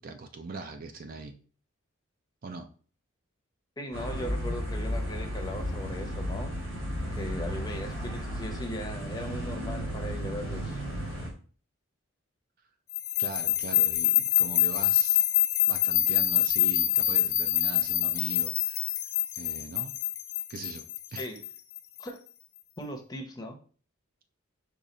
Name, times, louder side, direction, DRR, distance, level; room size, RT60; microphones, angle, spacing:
voice 1, 0.0-1.3 2.4-2.7 13.2-15.3 15.7-18.9 19.3-19.9 20.5-20.8 21.1-21.3, right 3 dB, 40° right, 7 dB, 0.4 m, -41 dB
voice 2, 3.8-6.5 7.1-10.8 21.2-21.4 22.0-22.2 22.8-23.6, left 1 dB, 20° left, 3 dB, 0.6 m, -38 dB
sound 1, 3.9-11.3, equal, 75° right, 2.4 m, -34 dB
sound 2, 12.9-22.0, left 13 dB, 80° left, 0.6 m, -26 dB
5.1 x 2.4 x 4.1 m, 0.41 s
head